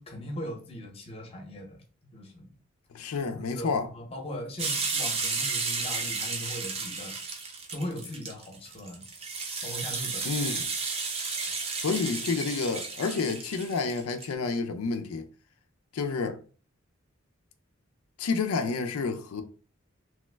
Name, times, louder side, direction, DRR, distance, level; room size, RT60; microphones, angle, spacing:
voice 1, 0.0-2.5 3.2-7.2 7.7-9.1 9.6-10.3, equal, 25° left, 0.7 m, -39 dB
voice 2, 2.9-3.9 10.2-10.7 11.8-15.2 15.9-16.4 18.2-19.4, left 4 dB, 90° left, 0.4 m, -29 dB
sound 1, 4.6-14.3, right 4 dB, 30° right, 0.5 m, -33 dB
3.1 x 2.0 x 3.2 m
head